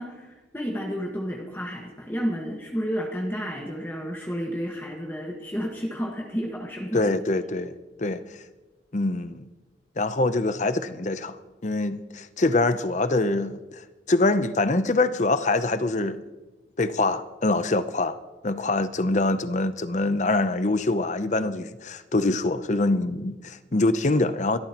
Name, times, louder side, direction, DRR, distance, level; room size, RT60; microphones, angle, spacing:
voice 1, 0.0-7.1, equal, 10° left, 1.6 m, -31 dB
voice 2, 6.9-8.2 8.9-9.5 10.0-11.4 11.6-16.3 16.8-18.2 18.4-24.6, left 2 dB, 40° left, 0.7 m, -24 dB
27.5 x 13.5 x 3.0 m
head